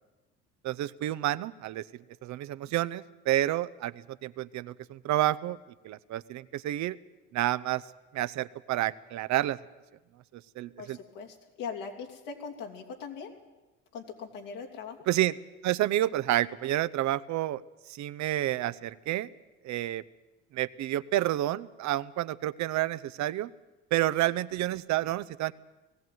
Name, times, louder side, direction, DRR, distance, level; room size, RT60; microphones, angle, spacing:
voice 1, 0.6-1.8 2.2-5.6 5.8-7.0 7.3-7.8 8.1-9.6 10.6-11.0 15.1-15.3 15.6-17.6 17.9-19.3 19.6-20.0 20.5-23.5 23.9-25.5, right 14 dB, 55° right, 15 dB, 0.8 m, -29 dB
voice 2, 10.8-13.3 13.9-15.0, left 5 dB, 70° left, 2 dB, 3.2 m, -40 dB
19.0 x 15.5 x 9.4 m, 1.1 s
supercardioid pair, 85°, 34 cm